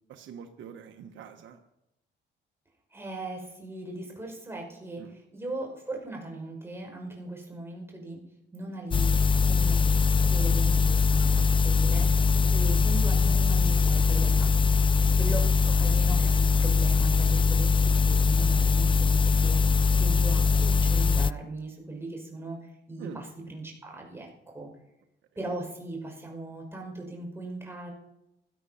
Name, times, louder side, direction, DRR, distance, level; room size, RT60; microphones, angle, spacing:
voice 1, 0.1-1.6 5.0-5.2 15.7-15.9 23.0-23.2, right 8 dB, 70° right, 4 dB, 1.2 m, -45 dB
voice 2, 2.9-8.2 8.5-9.8 10.2-14.8 15.1-19.6 20.0-24.7 25.4-27.9, right 2 dB, 10° right, 0 dB, 5.5 m, -39 dB
sound 1, 8.9-21.3, left 5 dB, 25° left, 0.4 m, -22 dB
16.5 x 11.5 x 5.7 m, 0.86 s
cardioid pair, 90°, 20 cm